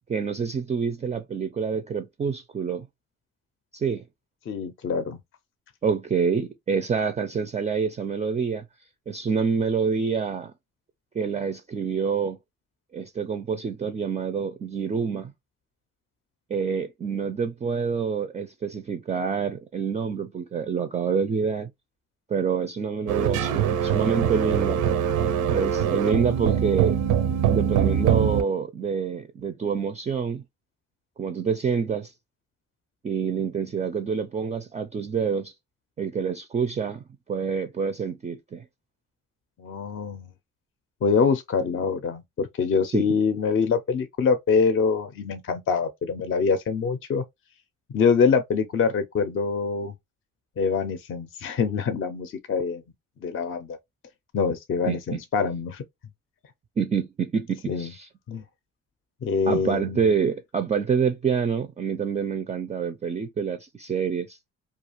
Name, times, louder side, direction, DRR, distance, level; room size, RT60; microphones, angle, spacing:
voice 1, 0.1-2.9 3.7-4.0 5.8-8.6 9.1-10.5 11.1-12.4 12.9-15.3 16.5-21.7 22.3-24.9 25.5-27.0 27.5-30.4 31.2-32.1 33.0-35.5 36.0-38.6 42.9-43.1 54.9-55.2 56.8-58.1 59.5-64.4, right 6 dB, 25° right, 0.3 m, -27 dB
voice 2, 4.5-5.2 39.6-40.3 41.0-47.2 47.9-49.9 50.6-52.8 53.2-53.8 54.3-55.8 57.7-57.9 58.3-58.4 59.2-60.1, left 5 dB, 45° left, 0.5 m, -25 dB
sound 1, 23.1-28.4, right 9 dB, 80° right, 0.5 m, -23 dB
2.3 x 2.3 x 2.9 m
cardioid pair, 90°, 30 cm